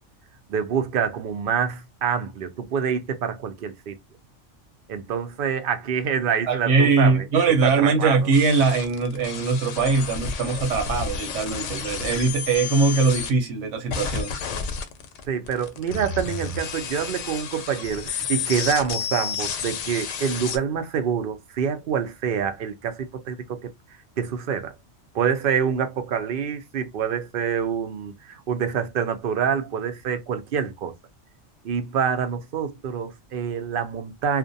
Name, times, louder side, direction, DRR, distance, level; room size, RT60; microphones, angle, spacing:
voice 1, 0.5-4.0 4.9-8.2 15.3-23.7 24.2-24.7 25.1-30.9 31.6-34.4, right 7 dB, 60° right, 0.7 m, -26 dB
voice 2, 6.5-14.4, right 4 dB, 80° right, 1.1 m, -21 dB
sound 1, 8.3-13.3 13.9-20.6, left 6 dB, 90° left, 0.9 m, -31 dB
2.5 x 2.1 x 2.6 m
omnidirectional pair, 1.2 m